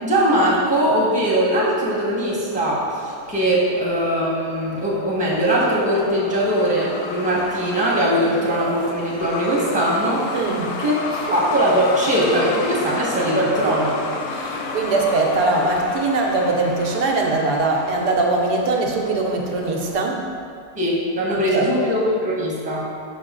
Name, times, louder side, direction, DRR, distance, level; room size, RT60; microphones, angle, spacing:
voice 1, 0.0-10.3 10.8-10.9 11.3-14.0 20.7-22.8, right 1 dB, 5° right, -6 dB, 1.1 m, -20 dB
Truck, 2.5-19.9, left 3 dB, 65° left, 0.8 m, -32 dB
voice 2, 10.3-10.8 14.3-20.3 21.3-21.7, right 3 dB, 80° right, 0 dB, 1.3 m, -21 dB
5.9 x 5.4 x 3.7 m, 2.2 s
omnidirectional pair, 1.7 m